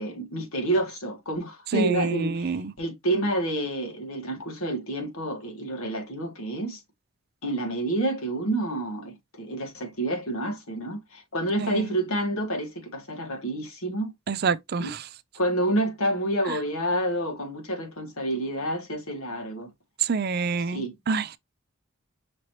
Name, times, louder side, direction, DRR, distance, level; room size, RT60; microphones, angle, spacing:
voice 1, 0.0-6.8 7.4-14.1 14.8-14.9 15.3-19.7 20.6-20.9, right 1 dB, 80° left, 1.9 m, -29 dB
voice 2, 1.7-2.7 11.6-11.9 14.3-15.0 20.0-21.4, right 5 dB, 45° right, 0.4 m, -27 dB
5.9 x 2.8 x 3.1 m
head